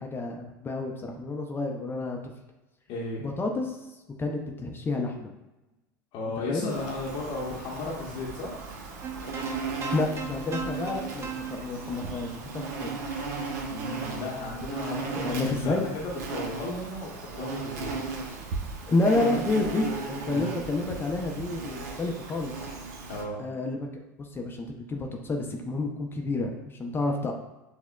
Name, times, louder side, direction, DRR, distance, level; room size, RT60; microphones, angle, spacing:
voice 1, 0.0-2.2 3.2-3.8 4.2-5.3 6.5-6.7 9.9-13.0 15.2-15.8 18.9-22.5 23.4-23.9 24.2-27.3, left 2 dB, 20° left, 2 dB, 0.5 m, -29 dB
voice 2, 2.9-3.2 6.1-8.6 13.7-17.9 20.3-20.5 23.1-23.4, left 2 dB, 50° left, -4 dB, 0.7 m, -35 dB
Insect, 6.7-23.2, right 4 dB, 65° right, 0.7 m, -36 dB
sound 1, 9.0-13.3, right 5 dB, 25° right, 0.5 m, -37 dB
6.0 x 2.1 x 2.2 m, 1.0 s
hypercardioid pair, 85°, 10 cm